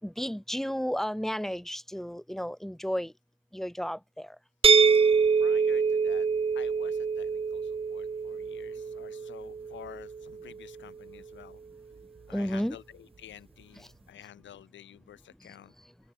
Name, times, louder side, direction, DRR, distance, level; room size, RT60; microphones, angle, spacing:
voice 1, 0.0-3.1 3.5-4.4 12.3-12.8 13.7-13.9 15.4-15.5 15.8-15.9, equal, ahead, 4.9 m, -33 dB
sound 1, 4.6-10.4, right 5 dB, 30° right, 0.8 m, -25 dB
voice 2, 5.4-6.3 6.5-11.6 12.3-12.8 13.2-15.7, left 11 dB, 70° left, 3.8 m, -50 dB
open air
cardioid pair, 90°, 20 cm